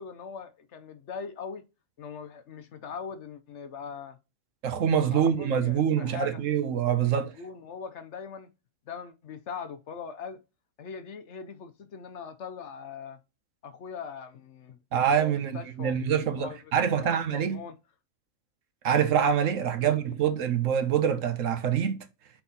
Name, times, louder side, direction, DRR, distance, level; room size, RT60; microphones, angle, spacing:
voice 1, 0.0-1.6 2.0-4.2 5.1-6.5 7.0-8.5 8.9-10.4 10.8-13.2 13.6-16.6 16.9-17.8 19.8-20.0, left 6 dB, 60° left, 1.0 m, -41 dB
voice 2, 4.6-7.3 14.9-17.6 18.8-22.0, right 8 dB, 70° right, 1.1 m, -25 dB
4.5 x 4.0 x 5.6 m
omnidirectional pair, 1.4 m